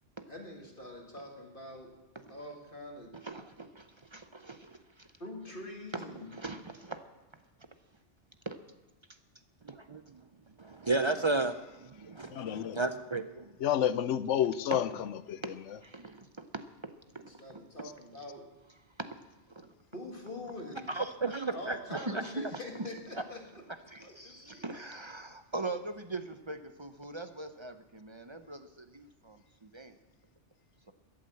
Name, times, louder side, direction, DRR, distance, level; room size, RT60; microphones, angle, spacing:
voice 1, 0.3-1.9 2.3-3.1 5.2-6.3 17.4-18.5 19.9-21.0 21.5-23.6 24.0-24.9, left 1 dB, 45° left, 2.1 m, -44 dB
voice 2, 3.1-5.1 5.9-7.0 8.5-8.6 9.7-9.9 14.7-14.8 15.4-16.6 17.1-17.4 19.0-19.1 19.5-19.7 21.9-22.9 23.9-24.0 24.5-29.9, right 2 dB, 30° right, 0.7 m, -41 dB
voice 3, 10.6-11.5 11.8-13.5 20.9-21.8 23.9-24.6, right 3 dB, 50° right, 0.3 m, -33 dB
voice 4, 12.3-12.8 13.6-14.9 15.3-15.5, left 10 dB, 85° left, 1.0 m, -29 dB
12.5 x 11.5 x 7.8 m
omnidirectional pair, 1.2 m